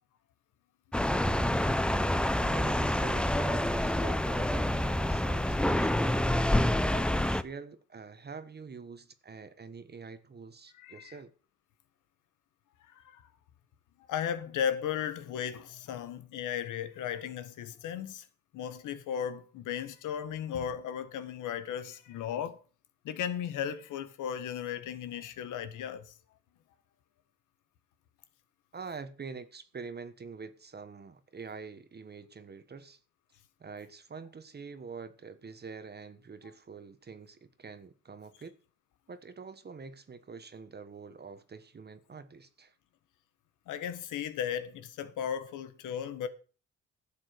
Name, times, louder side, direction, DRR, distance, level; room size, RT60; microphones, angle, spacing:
sound 1, 0.9-7.4, left 1 dB, 5° left, 0.7 m, -27 dB
voice 1, 2.4-6.4 6.9-11.3 28.7-33.0 33.6-38.6 39.1-42.7, right 5 dB, 35° right, 1.2 m, -46 dB
voice 2, 10.8-11.2 12.9-13.2 14.1-18.2 18.5-22.6 23.0-26.1 43.7-46.3, left 9 dB, 85° left, 1.5 m, -35 dB
12.0 x 7.4 x 6.6 m
cardioid pair, 90°, 30 cm